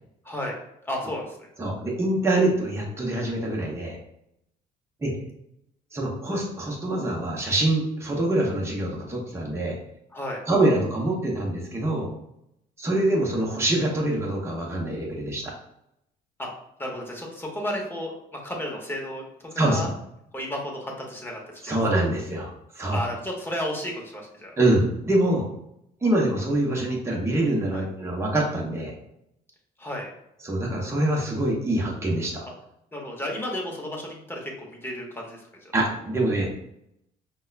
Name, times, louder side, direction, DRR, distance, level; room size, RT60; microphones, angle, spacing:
voice 1, 0.2-0.6 0.8-1.4 10.1-10.4 16.4-16.5 16.8-19.9 20.3-21.8 22.9-24.5 27.7-27.9 29.8-30.1 32.9-35.7, left 1 dB, 15° left, -1 dB, 0.9 m, -33 dB
voice 2, 1.6-4.0 5.0-5.1 5.9-9.8 10.5-12.1 12.8-15.4 19.6-19.9 21.6-23.0 24.6-25.5 26.0-28.9 30.4-32.4 35.7-36.5, right 1 dB, 15° right, -2 dB, 0.9 m, -25 dB
5.1 x 2.2 x 2.4 m, 0.78 s
cardioid pair, 110°, 17 cm